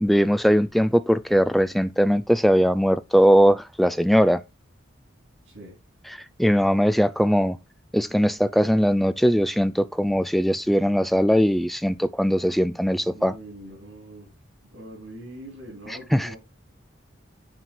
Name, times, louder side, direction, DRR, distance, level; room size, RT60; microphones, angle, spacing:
voice 1, 0.0-4.4 6.4-7.6 7.9-13.3 15.9-16.4, equal, ahead, 0.3 m, -20 dB
voice 2, 5.4-5.8 13.1-14.3 14.7-16.4, right 1 dB, 85° right, 3.7 m, -42 dB
8.9 x 4.3 x 4.6 m
head